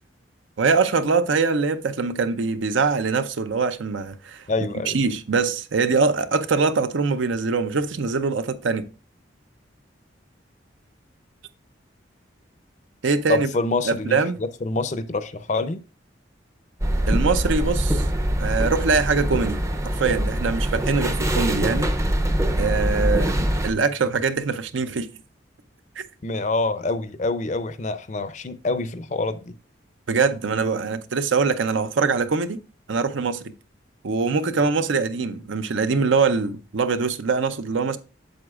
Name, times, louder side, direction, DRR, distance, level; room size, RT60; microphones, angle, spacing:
voice 1, 0.6-4.4 4.8-8.8 13.0-13.5 13.8-14.4 17.1-18.1 18.4-19.6 19.9-21.9 22.6-25.1 26.0-26.1 30.1-32.6 32.9-33.5 34.0-38.0, right 4 dB, 75° right, 0.6 m, -23 dB
voice 2, 4.5-5.0 13.3-15.8 26.2-29.5, left 3 dB, 40° left, 0.5 m, -26 dB
sound 1, 16.8-23.7, right 1 dB, 15° right, 0.5 m, -23 dB
7.8 x 7.0 x 2.4 m
head